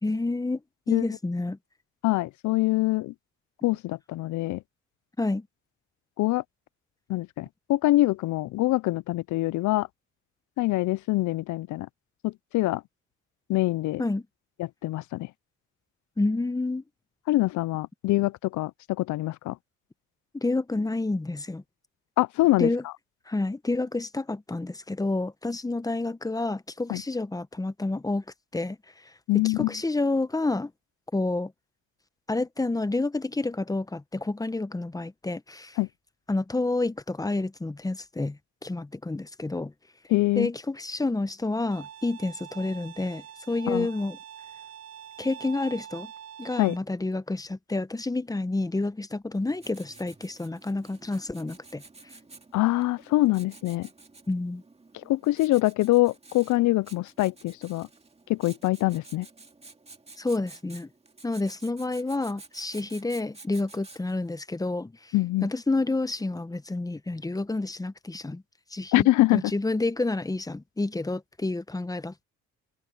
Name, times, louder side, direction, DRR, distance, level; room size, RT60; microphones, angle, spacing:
voice 1, 0.0-0.6 0.9-1.6 5.2-5.5 14.0-14.2 16.2-16.8 20.3-21.6 22.6-22.8 23.3-28.2 28.5-28.8 29.3-30.7 31.1-31.5 32.3-35.8 36.3-39.7 40.4-44.2 45.2-46.1 46.4-51.8 54.3-54.6 60.2-60.9 61.2-65.1 65.4-68.4 68.7-72.2, left 2 dB, 10° left, 0.9 m, -29 dB
voice 2, 2.0-3.1 3.6-4.6 6.2-6.4 7.1-9.9 10.6-11.9 12.2-12.8 13.5-14.0 14.6-15.3 17.3-19.6 22.2-22.7 26.9-27.0 29.3-29.7 35.8-35.9 40.1-40.5 43.7-43.9 46.6-46.8 52.5-53.9 55.1-57.9 58.3-59.3 65.1-65.5 68.9-69.5, left 18 dB, 75° left, 0.5 m, -24 dB
Bowed string instrument, 41.7-46.8, right 9 dB, 55° right, 5.0 m, -45 dB
Writing, 49.3-64.3, right 3 dB, 20° right, 2.3 m, -51 dB
cardioid pair, 90°, 30 cm